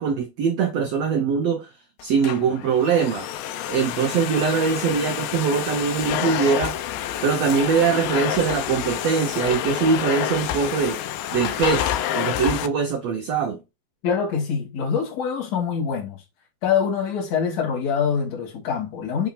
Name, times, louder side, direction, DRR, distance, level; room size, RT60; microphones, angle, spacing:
voice 1, 0.0-1.7 2.0-3.3 3.7-6.8 7.2-13.6, right 6 dB, 80° right, 1.5 m, -22 dB
Domestic sounds home sounds, 2.0-12.7, left 11 dB, 85° left, 2.4 m, -28 dB
voice 2, 14.0-16.2 16.6-19.3, left 7 dB, 55° left, 3.4 m, -24 dB
7.3 x 3.5 x 5.6 m
omnidirectional pair, 4.0 m